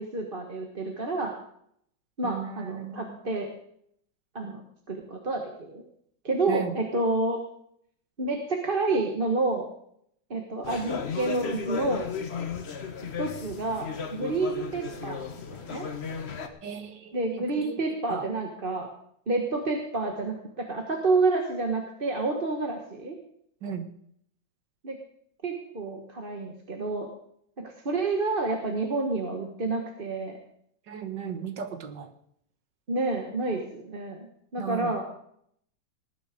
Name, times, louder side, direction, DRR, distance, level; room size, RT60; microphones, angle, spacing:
voice 1, 0.0-1.3 2.2-3.5 4.3-4.6 4.9-5.8 6.2-7.4 8.2-9.7 10.3-12.1 13.2-15.9 17.1-18.9 19.3-23.2 24.8-25.0 25.4-27.1 27.6-30.4 32.9-34.3 34.5-35.0, right 3 dB, 30° right, 2 dB, 1.4 m, -29 dB
voice 2, 2.2-3.2 6.5-6.8 16.6-17.2 17.6-17.8 18.1-18.2 23.6-23.9 30.9-32.1 34.6-34.9, right 7 dB, 65° right, 8 dB, 1.9 m, -36 dB
sound 1, 10.6-16.5, left 6 dB, 40° left, 1.2 m, -35 dB
19.0 x 9.7 x 5.1 m, 0.69 s
omnidirectional pair, 2.1 m